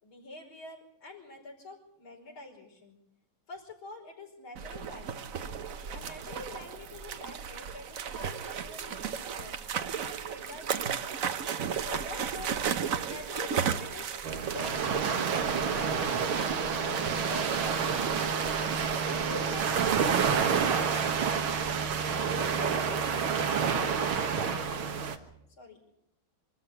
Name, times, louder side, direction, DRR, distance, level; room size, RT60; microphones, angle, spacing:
voice 1, 0.0-3.0 3.5-5.3 5.9-11.1 11.9-12.7 13.0-14.1 14.4-15.2 15.6-17.0 17.3-18.2 19.0-21.5 22.3-23.1 23.6-25.0 25.6-25.8, left 2 dB, 75° left, -2 dB, 6.0 m, -45 dB
sound 1, 4.6-22.0, right 7 dB, 55° right, 1.1 m, -36 dB
sound 2, 14.2-25.2, right 6 dB, 85° right, 2.3 m, -28 dB
25.0 x 13.5 x 8.6 m, 0.77 s
omnidirectional pair, 2.3 m